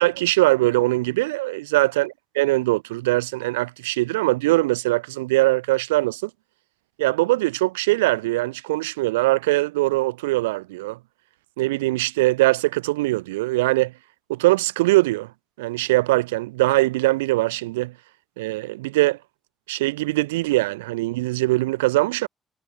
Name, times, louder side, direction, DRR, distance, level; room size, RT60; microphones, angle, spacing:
voice 1, 0.0-6.3 7.0-11.0 11.6-13.9 14.3-15.3 15.6-17.9 18.4-19.2 19.7-22.3, right 19 dB, 80° right, 6.4 m, -22 dB
figure-of-eight pair, 40°, 0 cm